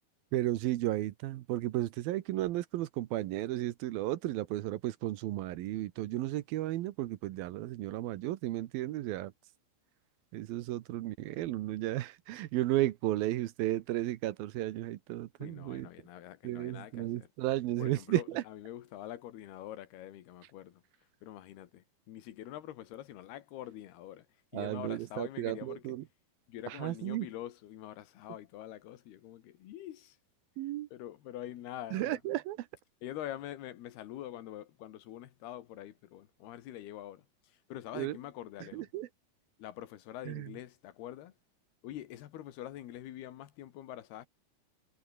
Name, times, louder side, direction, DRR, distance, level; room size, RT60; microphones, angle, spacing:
voice 1, 0.3-9.3 10.3-15.9 16.4-18.4 24.5-26.0 26.7-27.3 30.6-30.9 31.9-32.7 37.9-38.2 38.7-39.1 40.3-40.5, right 15 dB, 75° right, 2.7 m, -34 dB
voice 2, 15.4-17.3 17.8-20.8 21.2-24.3 24.5-25.8 26.5-30.2 30.9-32.2 33.0-38.9 39.6-41.3 41.8-44.3, left 12 dB, 85° left, 3.5 m, -45 dB
omnidirectional pair, 4.5 m